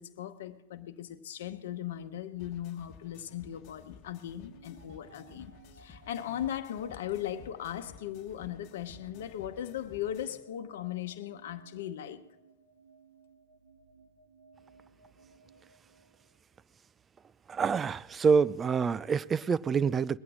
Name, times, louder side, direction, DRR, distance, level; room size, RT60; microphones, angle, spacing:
voice 1, 0.0-12.2, left 11 dB, 70° left, 1.0 m, -38 dB
sound 1, 2.4-10.4, left 7 dB, 45° left, 1.4 m, -54 dB
sound 2, 4.5-16.6, right 5 dB, 80° right, 2.5 m, -60 dB
voice 2, 17.5-20.2, right 5 dB, 20° right, 0.4 m, -26 dB
21.0 x 8.6 x 6.3 m
hypercardioid pair, 105°, 0 cm